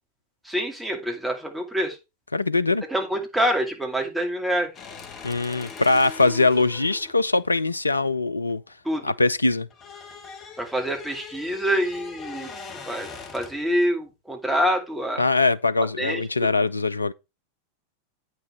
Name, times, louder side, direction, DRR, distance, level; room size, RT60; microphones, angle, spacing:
voice 1, 0.4-2.0 2.9-4.7 8.8-9.0 10.6-12.5 12.9-15.2 16.0-16.2, equal, 5° right, 2.6 m, -26 dB
voice 2, 2.3-2.8 5.2-8.6 9.0-9.7 15.2-17.1, left 3 dB, 80° left, 0.5 m, -22 dB
sound 1, 4.7-9.0 9.3-13.7, left 5 dB, 30° left, 1.6 m, -41 dB
8.7 x 6.2 x 4.5 m
figure-of-eight pair, 90°, 0 cm